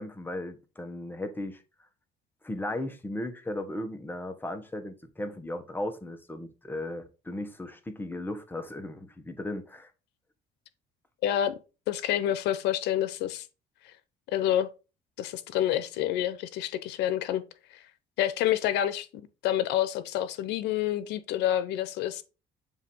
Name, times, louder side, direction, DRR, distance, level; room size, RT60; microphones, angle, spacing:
voice 1, 0.0-1.6 2.4-9.9, left 1 dB, 10° left, 1.1 m, -36 dB
voice 2, 11.2-11.6 11.9-13.5 14.3-14.7 15.2-17.4 17.7-17.8 18.2-19.1 19.4-22.2, left 11 dB, 85° left, 0.8 m, -28 dB
7.2 x 2.8 x 5.4 m
cardioid pair, 110°, 17 cm